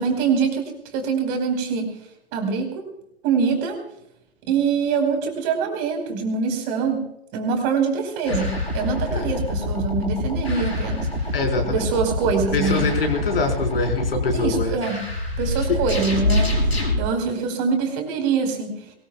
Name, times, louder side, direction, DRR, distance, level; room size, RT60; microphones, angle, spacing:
voice 1, 0.0-1.9 2.3-2.9 3.2-3.8 4.5-7.0 7.3-11.1 11.7-12.9 14.3-15.1 15.4-18.9, right 5 dB, 35° right, 4 dB, 4.6 m, -24 dB
sound 1, 8.3-17.0, left 1 dB, 90° left, 4.6 m, -25 dB
voice 2, 11.3-11.8 12.5-14.8 15.7-15.8, left 3 dB, 65° left, 3 dB, 4.4 m, -24 dB
22.0 x 21.0 x 2.3 m, 0.77 s
figure-of-eight pair, 110°, 31 cm